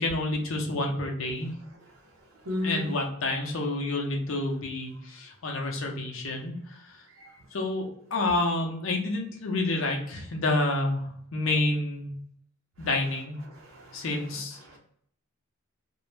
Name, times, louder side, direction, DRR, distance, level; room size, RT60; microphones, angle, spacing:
voice 1, 0.0-1.5 2.6-6.5 7.5-12.1 12.8-13.4 13.9-14.6, left 2 dB, 70° left, 1 dB, 0.6 m, -29 dB
voice 2, 2.4-2.9 7.2-7.3 13.5-14.3 14.6-14.8, left 1 dB, 70° right, -2 dB, 0.7 m, -35 dB
2.6 x 2.0 x 3.1 m, 0.67 s
head